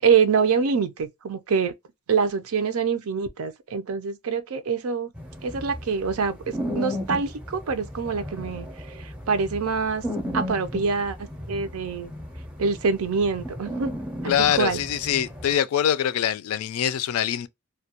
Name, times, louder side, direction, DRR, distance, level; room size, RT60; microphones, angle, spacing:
voice 1, 0.0-1.7 2.1-5.1 5.4-8.7 9.0-10.0 10.3-11.2 11.5-12.1 12.6-13.9 14.2-14.8, right 5 dB, 85° right, 0.5 m, -25 dB
sound 1, 5.1-15.5, left 1 dB, 5° right, 0.5 m, -35 dB
voice 2, 14.2-17.5, left 9 dB, 90° left, 0.3 m, -24 dB
2.2 x 2.2 x 2.7 m
head